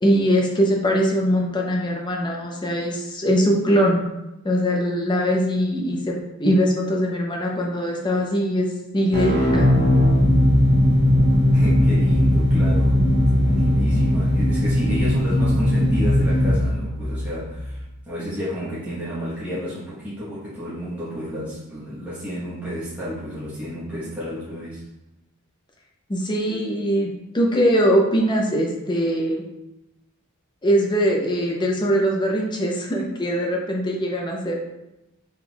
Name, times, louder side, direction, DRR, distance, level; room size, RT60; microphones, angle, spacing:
voice 1, 0.0-4.0 4.4-9.7 26.1-29.4 30.6-34.5, equal, 20° left, 0 dB, 0.6 m, -21 dB
sound 1, 9.1-17.8, left 1 dB, 70° left, 1.4 m, -18 dB
voice 2, 11.5-24.8, equal, 5° right, -12 dB, 1.0 m, -31 dB
4.3 x 3.8 x 2.3 m, 0.92 s
head